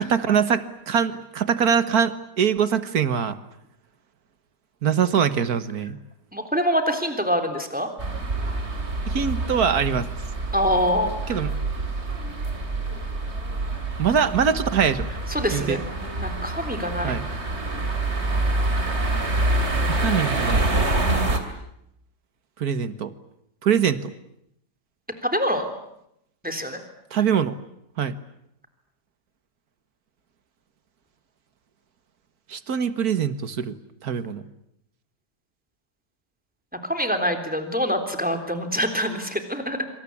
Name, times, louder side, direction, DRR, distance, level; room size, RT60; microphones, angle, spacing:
voice 1, 0.0-3.4 4.8-6.0 9.1-10.1 11.3-11.5 14.0-15.1 15.5-15.8 17.0-17.3 19.9-20.7 22.6-23.1 23.6-24.1 27.1-27.6 28.0-28.2 32.5-33.7 34.0-34.4, right 7 dB, 65° right, 12 dB, 1.8 m, -23 dB
voice 2, 6.3-7.9 10.5-11.1 15.3-15.8 16.2-17.2 25.2-25.7 26.4-26.8 36.9-39.8, equal, 5° right, 7 dB, 3.6 m, -25 dB
sound 1, 8.0-21.4, right 2 dB, 40° right, 3.1 m, -26 dB
26.0 x 26.0 x 8.6 m, 0.78 s
omnidirectional pair, 1.8 m